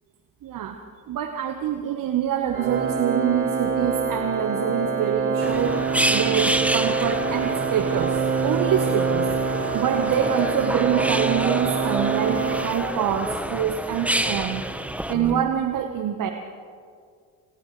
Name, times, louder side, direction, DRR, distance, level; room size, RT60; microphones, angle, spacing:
voice 1, 0.4-0.8 1.1-5.8 6.1-9.3 9.7-14.6 15.1-16.3, right 9 dB, 50° right, 5 dB, 1.5 m, -25 dB
Organ, 2.5-13.3, right 5 dB, 85° right, 5.3 m, -25 dB
sound 1, 5.4-15.4, right 1 dB, 5° right, 1.3 m, -29 dB
29.0 x 27.5 x 3.4 m, 2.1 s
hypercardioid pair, 55°, 41 cm